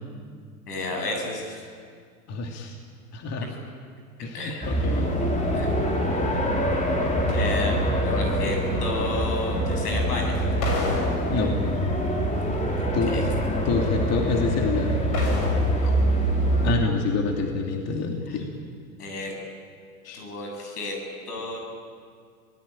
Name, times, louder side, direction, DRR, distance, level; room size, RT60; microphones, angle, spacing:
voice 1, 0.7-1.6 4.3-4.7 5.2-5.3 5.5-5.9 6.7-6.8 7.3-10.4 12.8-13.3 15.7-15.9 18.3-18.4 19.0-19.3 20.1-20.9 21.3-21.6, left 2 dB, 80° left, 2 dB, 8.0 m, -32 dB
voice 2, 2.3-2.7 3.1-3.5 4.2-5.1 11.3-11.6 12.9-13.1 13.6-15.0 16.6-18.4 20.0-20.3, left 4 dB, 35° left, 2 dB, 2.8 m, -27 dB
sound 1, 4.6-16.8, equal, 15° left, 3.7 m, -24 dB
sound 2, 7.3-8.1 10.6-11.9 15.1-16.2 16.5-16.6, left 3 dB, 50° left, 6.9 m, -31 dB
26.5 x 18.5 x 8.9 m, 2.1 s
hypercardioid pair, 105°, 46 cm